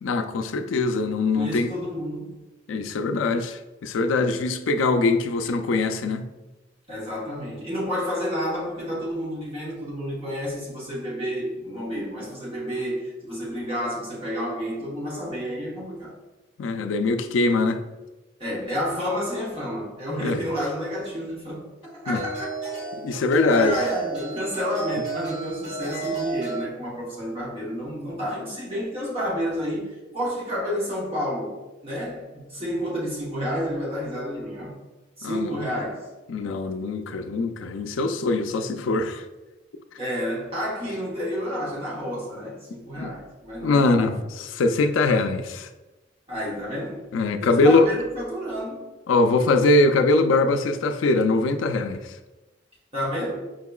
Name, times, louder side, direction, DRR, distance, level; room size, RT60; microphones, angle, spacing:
voice 1, 0.0-1.7 2.7-6.2 16.6-17.8 20.2-20.4 22.1-22.2 22.9-23.8 35.2-35.6 36.3-39.2 43.0-43.1 43.6-45.7 47.1-47.9 49.1-52.1, left 3 dB, 85° left, 0.4 m, -22 dB
voice 2, 1.3-2.4 6.9-16.2 18.4-22.5 23.5-34.8 35.2-36.1 40.0-44.2 46.3-47.1 47.4-48.9 52.9-53.5, equal, 30° right, 1.1 m, -30 dB
sound 1, 20.7-20.9 22.1-26.6, right 4 dB, 80° right, 1.4 m, -32 dB
5.2 x 2.9 x 2.3 m
head